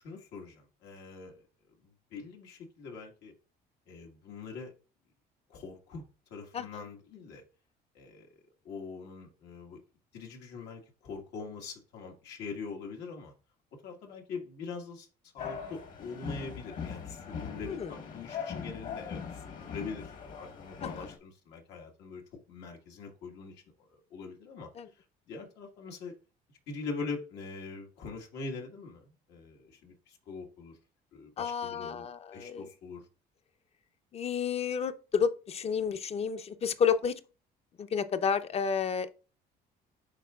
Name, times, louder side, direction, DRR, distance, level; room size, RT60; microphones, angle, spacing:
voice 1, 0.0-1.4 1.8-3.3 3.9-4.7 5.5-7.4 7.9-8.3 8.6-9.8 10.1-13.3 13.8-15.1 15.3-22.2 22.5-23.6 23.9-24.7 25.3-26.1 26.7-30.8 31.1-32.1 32.3-33.0, left 4 dB, 85° left, 1.7 m, -43 dB
voice 2, 6.5-6.8 17.6-18.0 20.8-21.1 24.8-24.9 31.4-32.7 34.1-37.2 37.8-39.1, left 7 dB, 35° left, 0.6 m, -31 dB
sound 1, 15.4-21.2, left 6 dB, 50° left, 1.4 m, -41 dB
10.5 x 3.9 x 2.4 m
cardioid pair, 110°, 17 cm